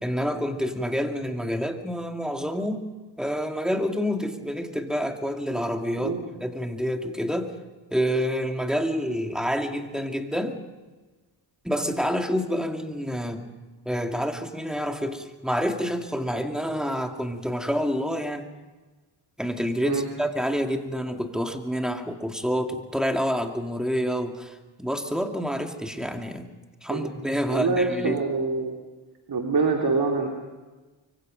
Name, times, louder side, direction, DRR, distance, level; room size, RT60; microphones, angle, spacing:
voice 1, 0.0-2.9 3.2-6.1 6.4-7.5 7.9-10.6 11.6-13.4 13.9-18.5 19.4-26.5 26.8-28.2, equal, ahead, 4 dB, 2.3 m, -28 dB
voice 2, 27.5-28.7 29.3-30.3, right 4 dB, 55° right, 2 dB, 2.8 m, -25 dB
24.5 x 24.5 x 5.3 m, 1.2 s
cardioid pair, 80°, 43 cm